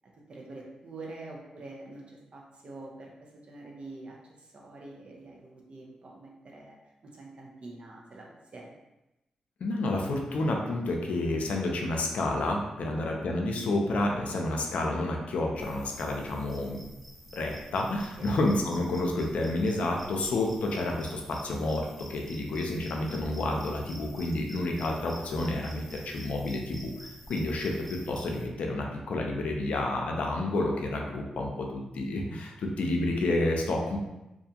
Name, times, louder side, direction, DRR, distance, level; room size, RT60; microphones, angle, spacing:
voice 1, 0.3-6.8 7.0-8.7 12.8-13.1 18.2-18.3 22.5-22.6, right 2 dB, 55° right, -2 dB, 0.7 m, -46 dB
voice 2, 9.6-16.8 17.3-34.0, left 2 dB, 75° left, 1 dB, 0.4 m, -30 dB
sound 1, 15.6-28.5, equal, ahead, 0.6 m, -49 dB
2.5 x 2.3 x 2.7 m, 0.96 s
supercardioid pair, 50°, 2 cm